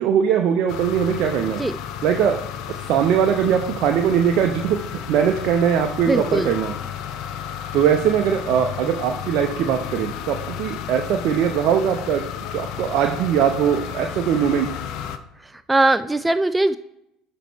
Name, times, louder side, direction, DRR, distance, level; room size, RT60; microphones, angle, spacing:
voice 1, 0.0-1.6 2.0-2.4 2.9-4.8 5.1-6.7 7.7-12.2 12.5-14.7, right 8 dB, 55° right, 4 dB, 0.7 m, -20 dB
sound 1, 0.7-15.2, left 9 dB, 60° left, 0.5 m, -33 dB
voice 2, 6.1-6.5 15.4-16.8, right 2 dB, 10° right, 12 dB, 0.3 m, -20 dB
9.1 x 3.1 x 4.6 m, 0.83 s
hypercardioid pair, 70°, 0 cm